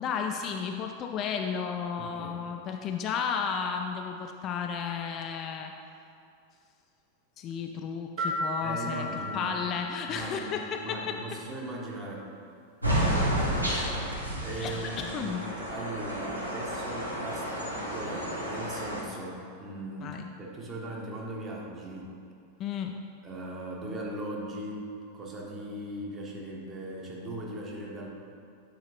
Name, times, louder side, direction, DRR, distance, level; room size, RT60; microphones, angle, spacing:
voice 1, 0.0-5.7 7.4-9.1 9.3-11.2 13.6-14.0 14.6-15.5 20.0-20.2 22.6-23.0, left 6 dB, 35° left, 3 dB, 0.3 m, -33 dB
voice 2, 2.0-2.4 8.6-9.6 10.1-12.3 14.4-15.3 15.7-22.2 23.2-24.9 25.1-28.1, right 1 dB, 25° right, -2 dB, 1.1 m, -39 dB
sound 1, 8.2-10.8, left 1 dB, 55° right, 1.2 m, -35 dB
sound 2, 12.8-19.0, equal, 85° right, 1.0 m, -31 dB
7.5 x 4.6 x 3.0 m, 2.5 s
figure-of-eight pair, 90°, 0 cm